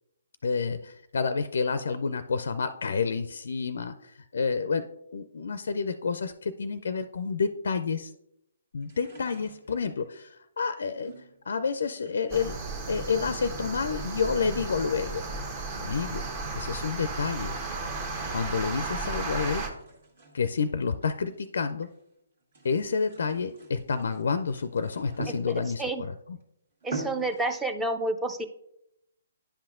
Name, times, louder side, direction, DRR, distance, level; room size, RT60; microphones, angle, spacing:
voice 1, 0.4-8.1 8.7-11.1 11.5-12.6 12.9-15.2 15.7-16.3 16.5-17.6 18.3-19.7 20.3-21.9 22.6-26.4, left 5 dB, 65° left, 12 dB, 0.4 m, -29 dB
sound 1, 8.8-10.1 11.0-12.5 12.8-13.4 13.7-16.8 17.4-19.0 19.4-22.0 22.4-25.9 26.4-26.5 26.8-27.5, right 3 dB, 55° right, 1.6 m, -46 dB
sound 2, 12.3-19.7, right 3 dB, 30° right, 1.0 m, -34 dB
voice 2, 26.8-28.5, right 2 dB, 5° right, 7 dB, 0.5 m, -29 dB
9.9 x 5.8 x 2.5 m, 0.80 s
figure-of-eight pair, 135°, 0 cm